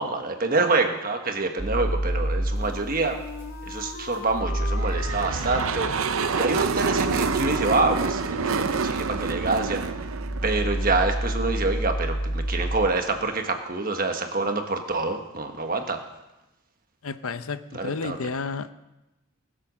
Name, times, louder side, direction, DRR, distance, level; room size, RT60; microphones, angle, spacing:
voice 1, 0.0-3.2 3.7-5.9 6.3-9.8 10.4-16.0 17.8-18.2, right 3 dB, 40° right, 5 dB, 1.3 m, -26 dB
sound 1, 1.6-12.8, right 1 dB, 15° right, 4.1 m, -31 dB
Wind instrument woodwind instrument, 2.6-9.4, left 4 dB, 50° left, 1.1 m, -41 dB
sound 2, 4.8-11.2, right 5 dB, 65° right, 0.7 m, -27 dB
voice 2, 17.0-18.7, left 4 dB, 70° left, 12 dB, 0.7 m, -31 dB
20.0 x 7.7 x 6.2 m, 1.0 s
head